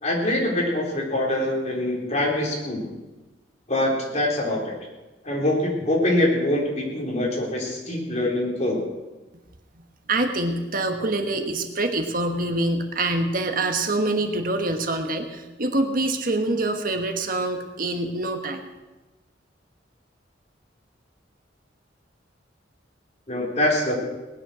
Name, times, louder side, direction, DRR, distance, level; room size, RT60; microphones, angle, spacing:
voice 1, 0.0-2.9 3.7-4.7 5.2-8.8 23.3-24.0, left 1 dB, 40° left, -2 dB, 4.1 m, -24 dB
voice 2, 10.1-18.7, right 2 dB, 50° right, 5 dB, 1.4 m, -25 dB
19.0 x 10.5 x 6.3 m, 1.1 s
head